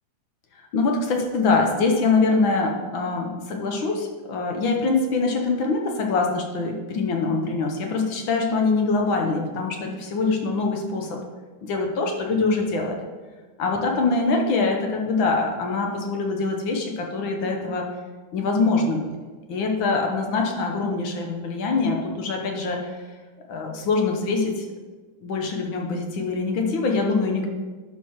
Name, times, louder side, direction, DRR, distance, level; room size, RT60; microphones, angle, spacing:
voice 1, 0.7-11.2 11.6-13.1 13.6-17.9 18.3-19.2 19.5-23.0 23.5-24.7 25.2-27.5, left 3 dB, 70° left, 2 dB, 1.7 m, -24 dB
11.5 x 4.6 x 4.6 m, 1.4 s
omnidirectional pair, 2.4 m